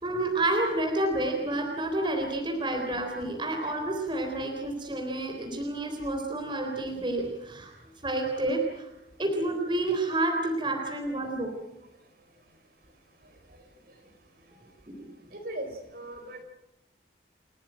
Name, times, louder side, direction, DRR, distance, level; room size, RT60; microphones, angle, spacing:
voice 1, 0.0-7.7 8.0-8.9 9.2-11.5 14.9-15.1, right 2 dB, 25° right, 3.8 m, -29 dB
voice 2, 15.3-16.4, right 1 dB, 55° right, 4.7 m, -38 dB
29.5 x 14.0 x 9.0 m
head